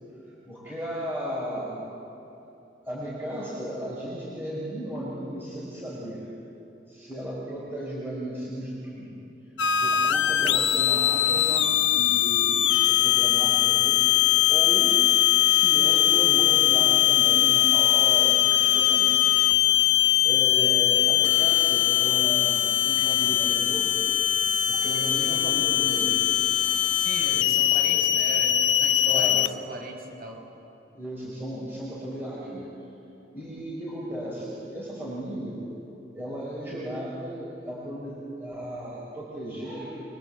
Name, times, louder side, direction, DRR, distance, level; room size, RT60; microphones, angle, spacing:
voice 1, 0.5-1.8 2.8-6.2 6.9-9.2 9.8-14.9 15.4-19.1 20.2-24.0 24.7-26.2 27.3-27.7 29.0-29.4 30.9-32.7 33.3-35.6 36.1-40.0, right 1 dB, 10° right, -7 dB, 5.4 m, -35 dB
sound 1, 9.6-29.5, left 13 dB, 75° left, 0.9 m, -21 dB
voice 2, 26.9-30.4, right 1 dB, 55° right, 2 dB, 5.6 m, -38 dB
24.5 x 23.5 x 8.3 m, 2.9 s
head